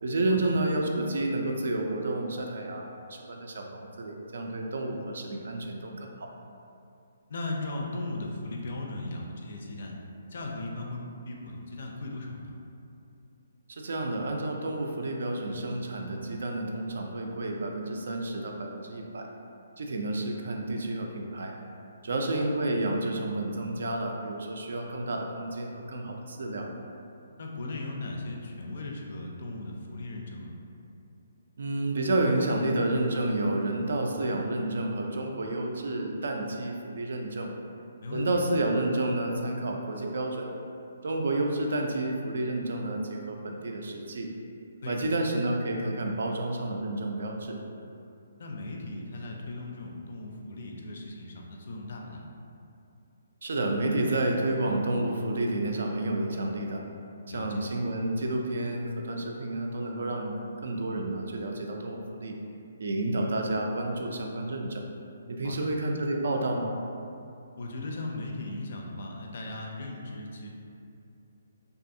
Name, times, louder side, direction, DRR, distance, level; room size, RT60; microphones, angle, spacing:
voice 1, 0.0-6.3 13.7-19.3 19.8-21.5 22.0-26.7 31.6-37.5 38.1-40.5 41.0-44.3 44.9-47.6 53.4-56.8 57.3-60.3 60.6-62.4 62.8-64.9 65.3-66.7, right 2 dB, 70° right, 1 dB, 0.3 m, -30 dB
voice 2, 7.3-9.9 10.3-12.6 22.1-22.4 27.4-30.5 38.0-38.4 44.8-45.1 48.4-52.2 57.3-57.6 65.4-65.7 67.6-70.5, left 2 dB, 55° left, 0 dB, 0.4 m, -37 dB
2.6 x 2.3 x 2.6 m, 2.6 s
hypercardioid pair, 165°, 0 cm